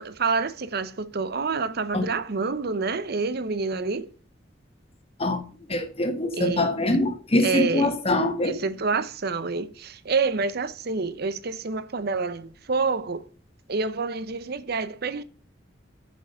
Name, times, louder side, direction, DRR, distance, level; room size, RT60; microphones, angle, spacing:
voice 1, 0.0-4.1 6.3-6.8 7.4-7.9 8.4-13.3 13.7-15.2, right 4 dB, 55° right, 0.8 m, -28 dB
voice 2, 5.7-8.5, left 2 dB, 35° left, 1.6 m, -24 dB
7.5 x 6.8 x 5.7 m
head